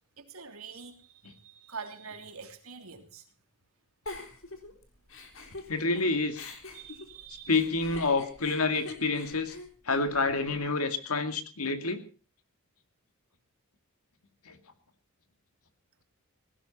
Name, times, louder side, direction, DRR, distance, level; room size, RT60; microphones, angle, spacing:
voice 1, 0.2-3.2 6.7-7.5, right 5 dB, 80° right, 3.0 m, -45 dB
Giggle, 4.1-6.0 6.3-10.6, left 2 dB, 65° left, 3.9 m, -44 dB
voice 2, 5.7-6.5 7.5-9.5 9.9-12.0 14.5-14.6, left 3 dB, 90° left, 2.3 m, -28 dB
19.0 x 16.5 x 4.2 m
head